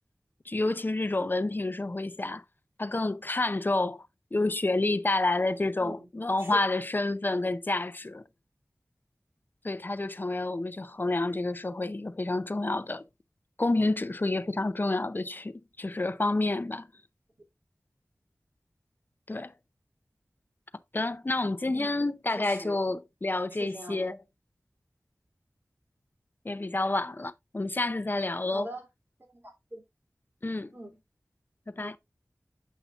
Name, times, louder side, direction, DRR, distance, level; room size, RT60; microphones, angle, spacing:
voice 1, 0.5-2.4 2.8-8.2 9.6-13.0 13.6-16.9 19.3-19.5 20.9-24.2 26.4-28.7 30.4-30.7 31.7-32.0, left 2 dB, 35° left, 0.5 m, -29 dB
voice 2, 22.3-22.8 23.5-24.1 28.5-28.9 29.3-29.8 30.7-31.0 31.8-32.0, right 1 dB, 40° right, 3.1 m, -42 dB
8.2 x 5.7 x 2.5 m
wide cardioid pair, 55°, 6 cm